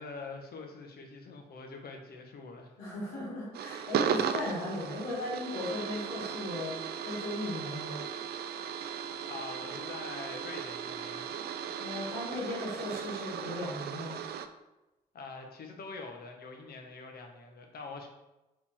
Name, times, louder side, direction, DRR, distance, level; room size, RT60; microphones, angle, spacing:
voice 1, 0.0-2.7 9.2-11.3 15.1-18.1, left 4 dB, 50° left, 3 dB, 1.4 m, -44 dB
voice 2, 2.8-8.0 11.8-14.2, left 2 dB, 75° left, -7 dB, 2.5 m, -37 dB
sound 1, 3.5-14.5, right 8 dB, 55° right, 0.6 m, -36 dB
7.0 x 4.3 x 4.6 m, 1.0 s
figure-of-eight pair, 40°, 20 cm